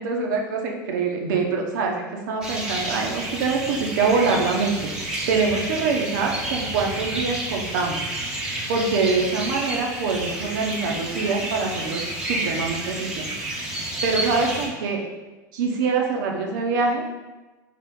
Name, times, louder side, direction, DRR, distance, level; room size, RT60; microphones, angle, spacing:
voice 1, 0.0-4.9 5.3-8.1 8.7-13.3 14.0-15.1 15.5-17.0, right 4 dB, 70° right, 1 dB, 0.9 m, -24 dB
sound 1, 2.4-14.7, right 1 dB, 5° right, 1.0 m, -30 dB
3.8 x 3.6 x 3.7 m, 1.2 s
hypercardioid pair, 105°, 11 cm